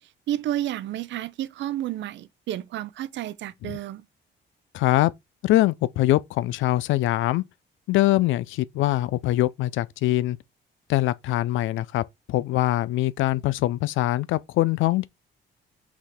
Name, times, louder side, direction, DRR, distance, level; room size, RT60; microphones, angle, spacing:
voice 1, 0.3-4.0, right 12 dB, 65° right, 0.5 m, -31 dB
voice 2, 4.7-5.1 5.4-7.4 7.9-10.4 10.9-12.0 12.3-15.1, left 15 dB, 80° left, 0.4 m, -23 dB
4.0 x 3.0 x 4.2 m
cardioid pair, 90°, 20 cm